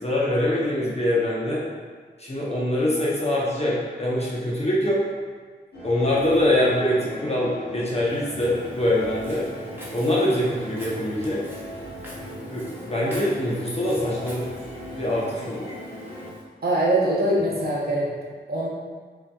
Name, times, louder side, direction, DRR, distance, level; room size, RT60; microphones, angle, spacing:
voice 1, 0.0-1.6 2.2-5.1 5.8-9.5 9.9-11.4 12.5-14.5 14.9-15.7, left 1 dB, 35° left, -6 dB, 0.8 m, -24 dB
sound 1, 5.7-16.3, equal, 60° left, 1.0 m, -38 dB
Walk footsteps, 8.1-16.4, equal, 10° right, 1.0 m, -46 dB
voice 2, 16.6-18.1 18.5-18.7, right 1 dB, 55° right, -5 dB, 0.9 m, -22 dB
3.6 x 2.9 x 2.2 m, 1.5 s
cardioid pair, 45°, 19 cm